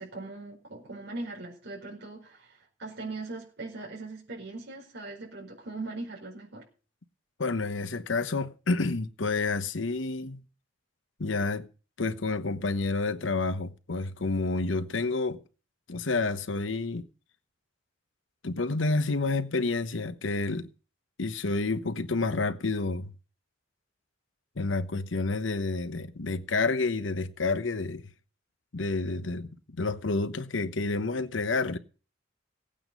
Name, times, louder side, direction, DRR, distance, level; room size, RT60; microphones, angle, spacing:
voice 1, 0.0-6.6, right 2 dB, 60° right, 5.0 m, -40 dB
voice 2, 7.4-10.4 11.2-11.7 12.0-15.4 15.9-17.1 18.4-20.7 21.2-23.1 24.6-28.0 28.7-31.8, left 3 dB, 85° left, 1.0 m, -29 dB
17.5 x 8.8 x 5.3 m
head